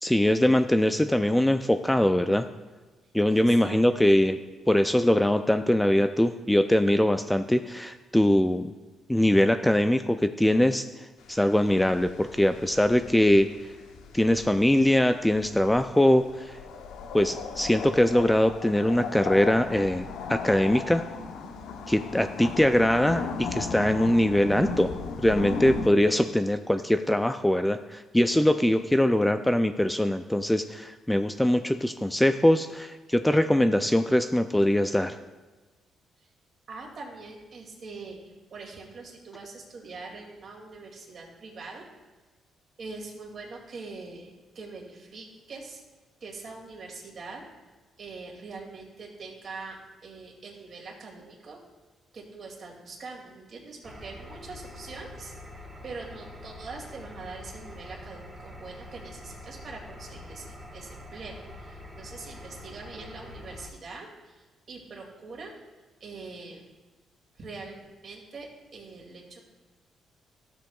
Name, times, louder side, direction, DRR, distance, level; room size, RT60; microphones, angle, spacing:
voice 1, 0.0-2.5 3.1-4.4 4.7-8.7 9.1-10.8 11.3-13.5 14.1-16.6 17.1-21.0 21.9-24.9 25.2-35.2, left 1 dB, 5° left, 9 dB, 0.3 m, -22 dB
voice 2, 3.3-3.8 36.2-36.3 36.7-41.9 42.8-45.8 46.2-47.4 48.0-51.6 52.1-55.3 55.8-65.5 66.0-66.6 67.3-69.4, right 3 dB, 50° right, -1 dB, 2.3 m, -43 dB
sound 1, 11.2-25.9, left 5 dB, 90° left, 0.7 m, -37 dB
Engine, 53.8-63.7, left 1 dB, 10° right, 1.6 m, -45 dB
13.0 x 7.7 x 2.3 m, 1.3 s
cardioid pair, 90°, 0 cm